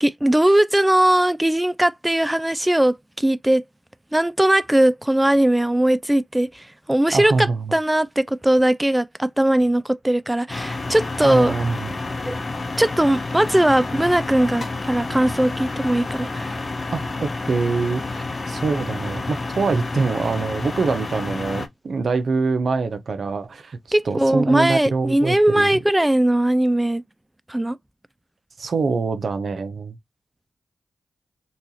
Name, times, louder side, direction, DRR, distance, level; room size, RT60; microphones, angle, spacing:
voice 1, 0.0-3.6 4.1-11.5 12.2-12.4 12.8-16.6 23.9-27.0 27.5-27.8, right 1 dB, 15° right, 0.3 m, -19 dB
voice 2, 7.1-7.7 11.2-11.9 16.9-23.8 24.1-25.8 28.6-30.0, right 4 dB, 70° right, 0.6 m, -24 dB
sound 1, 10.5-21.7, left 3 dB, 45° left, 0.7 m, -29 dB
4.1 x 2.3 x 2.7 m
cardioid pair, 50°, 0 cm